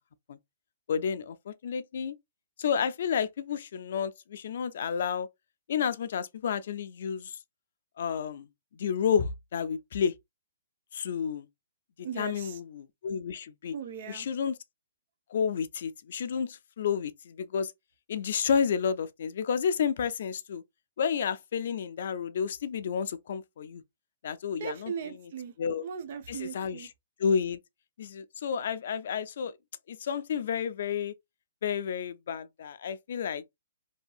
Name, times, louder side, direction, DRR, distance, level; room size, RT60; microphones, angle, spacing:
voice 1, 0.9-2.2 2.6-5.3 5.7-7.4 8.0-8.5 8.7-10.1 10.9-11.5 12.2-13.7 14.1-14.5 15.3-17.7 18.1-20.6 21.0-23.8 24.2-24.9 25.6-25.8 26.3-26.8 27.2-27.6 28.0-29.5 29.9-31.1 31.6-33.4, left 7 dB, 60° left, 0.4 m, -30 dB
voice 2, 12.0-12.6 13.7-14.3 24.6-25.5 25.8-26.9, right 7 dB, 55° right, 0.6 m, -38 dB
2.7 x 2.6 x 2.3 m
hypercardioid pair, 145°, 0 cm